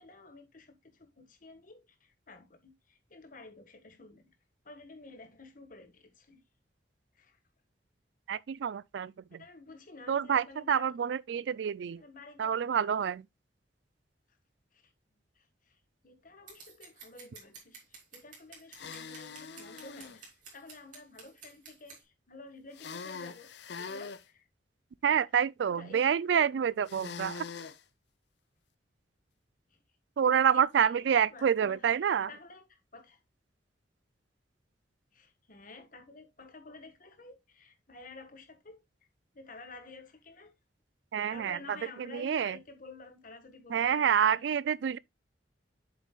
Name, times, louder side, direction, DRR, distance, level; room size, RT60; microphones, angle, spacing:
voice 1, 0.0-4.3 4.6-6.4 7.1-7.4 9.3-10.9 12.0-12.6 14.7-14.9 15.3-23.5 23.8-24.5 25.7-26.5 26.8-27.1 29.7-29.8 30.3-31.0 31.3-33.2 35.1-38.9 39.3-40.5 41.3-44.5, left 3 dB, 50° left, 1.5 m, -52 dB
voice 2, 8.3-9.4 10.1-12.0 12.4-13.2 25.0-27.5 30.2-32.3 41.1-41.6 42.0-42.6 43.7-45.0, right 8 dB, 75° right, 0.3 m, -28 dB
Scissors, 16.5-22.0, right 5 dB, 45° right, 3.4 m, -51 dB
sound 1, 18.7-20.2 22.7-24.2 26.9-27.8, left 5 dB, 65° left, 0.7 m, -43 dB
7.4 x 7.3 x 2.3 m
head